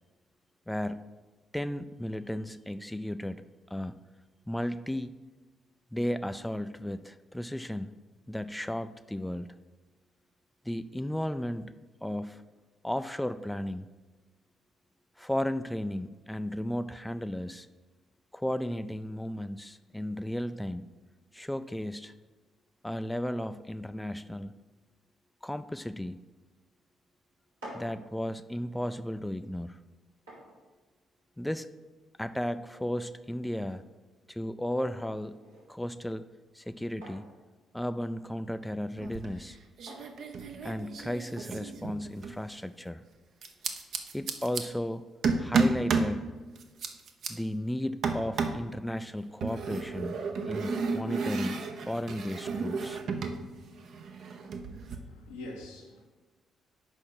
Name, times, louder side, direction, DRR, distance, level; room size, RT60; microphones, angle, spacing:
voice 1, 0.7-1.0 1.5-3.4 3.7-4.0 4.5-5.1 5.9-7.9 8.3-9.5 10.7-11.7 12.0-12.4 12.8-13.9 15.2-17.7 18.3-20.9 21.3-22.1 22.8-24.5 25.4-26.2 27.7-29.8 31.4-31.7 32.2-33.8 34.3-35.4 35.7-36.2 36.5-37.3 37.7-39.6 40.6-43.0 44.1-45.0 45.4-46.3 47.3-50.1 50.4-53.0, left 1 dB, 5° left, 11 dB, 0.4 m, -34 dB
sound 1, 27.3-41.2, right 1 dB, 90° right, 2.2 m, -54 dB
sound 2, 39.0-39.5 39.8-42.4 43.4-44.6 45.2-46.1 46.6-47.3 48.0-48.7 49.4-53.4 53.7-55.0, right 4 dB, 60° right, 0.7 m, -32 dB
voice 2, 55.0-56.0, left 2 dB, 85° left, -1 dB, 1.1 m, -44 dB
6.4 x 5.3 x 5.7 m, 1.3 s
hypercardioid pair, 45°, 0 cm